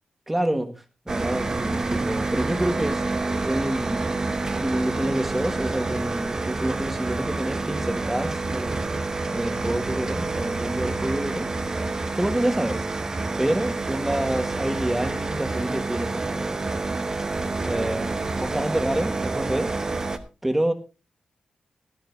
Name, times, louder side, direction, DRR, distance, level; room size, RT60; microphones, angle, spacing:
voice 1, 0.3-0.7 1.0-3.1 3.4-4.0 4.6-8.9 9.3-11.9 12.1-12.9 13.4-16.8 17.6-19.7 20.4-20.7, right 1 dB, 10° right, 1.5 m, -27 dB
sound 1, 1.1-20.2, right 3 dB, 25° right, 1.0 m, -28 dB
16.0 x 13.5 x 2.6 m
wide cardioid pair, 175°, 2 cm